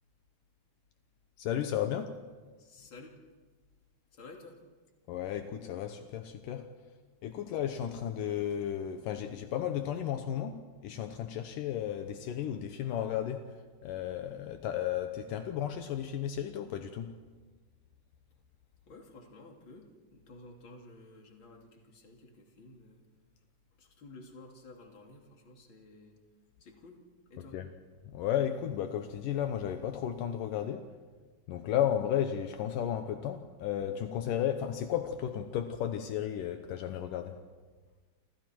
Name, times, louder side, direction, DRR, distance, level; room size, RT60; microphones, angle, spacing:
voice 1, 1.4-2.2 5.1-6.7 7.2-13.5 13.8-17.1 27.4-27.7 28.1-30.9 31.5-37.4, left 10 dB, 75° left, 7 dB, 2.6 m, -34 dB
voice 2, 2.6-3.2 4.1-4.6 18.9-23.0 23.8-26.2 26.6-27.0 27.3-27.6, left 2 dB, 35° left, 1 dB, 3.3 m, -52 dB
28.0 x 28.0 x 4.5 m, 1.4 s
omnidirectional pair, 3.9 m